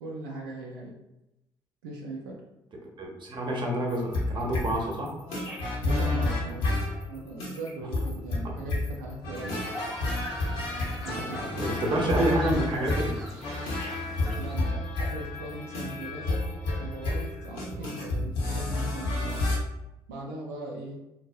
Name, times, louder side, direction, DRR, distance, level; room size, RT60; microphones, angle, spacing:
voice 1, 0.0-0.9 1.8-2.4 5.8-6.7 7.1-9.6 11.0-13.0 14.4-16.4 16.8-19.4 20.1-21.0, right 2 dB, 85° right, -3 dB, 0.4 m, -39 dB
voice 2, 3.0-5.1 8.4-8.6 11.1-13.2 14.2-14.4, right 1 dB, 45° right, 0 dB, 0.7 m, -29 dB
sound 1, 3.9-19.6, left 2 dB, 80° left, 0.6 m, -30 dB
sound 2, 9.3-14.6, equal, ahead, 0.7 m, -43 dB
2.6 x 2.0 x 2.4 m, 0.90 s
hypercardioid pair, 50°, 11 cm